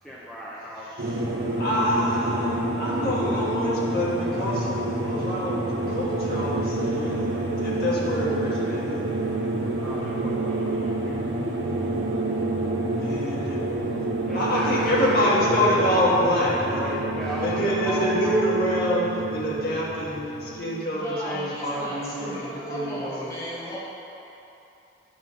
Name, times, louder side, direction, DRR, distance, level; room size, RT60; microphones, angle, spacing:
voice 1, 0.0-1.2 9.8-11.2 14.2-16.3 17.1-18.5 21.7-22.4, equal, 5° left, -8 dB, 0.6 m, -35 dB
sound 1, 1.0-20.5, right 1 dB, 65° right, 1.0 m, -29 dB
voice 2, 1.6-9.0 13.0-13.6 14.3-17.0 17.4-23.3, equal, 55° left, -7 dB, 1.6 m, -26 dB
sound 2, 5.8-20.8, right 4 dB, 90° right, 0.3 m, -32 dB
voice 3, 20.9-23.8, equal, 20° left, -8 dB, 1.8 m, -36 dB
9.4 x 3.6 x 6.2 m, 2.9 s
head